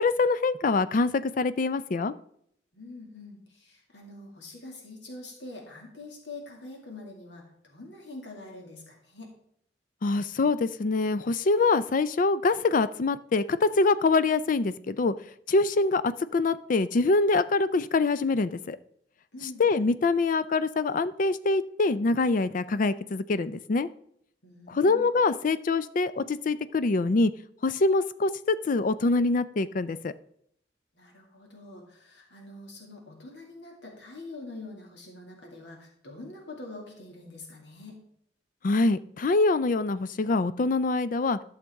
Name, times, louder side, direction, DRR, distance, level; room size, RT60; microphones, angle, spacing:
voice 1, 0.0-2.1 10.0-15.1 15.5-18.8 19.6-23.9 24.7-27.3 27.6-30.1 38.6-41.4, left 3 dB, 50° left, 15 dB, 0.4 m, -24 dB
voice 2, 2.7-9.3 19.3-19.6 24.4-25.0 30.9-38.0, left 2 dB, 75° left, 0 dB, 2.2 m, -45 dB
12.0 x 6.5 x 3.5 m, 0.70 s
head